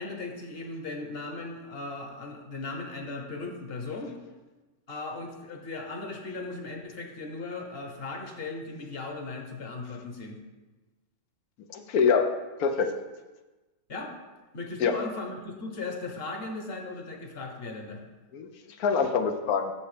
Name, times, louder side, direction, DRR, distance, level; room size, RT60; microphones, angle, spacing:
voice 1, 0.0-4.2 4.9-10.4 13.9-14.1 14.5-18.0, left 3 dB, 45° left, 3 dB, 1.3 m, -37 dB
voice 2, 11.7-12.3 12.6-12.9 14.8-15.0 18.3-18.5 18.8-19.7, left 6 dB, 80° left, 6 dB, 1.2 m, -24 dB
7.3 x 6.7 x 5.0 m, 1.2 s
omnidirectional pair, 1.5 m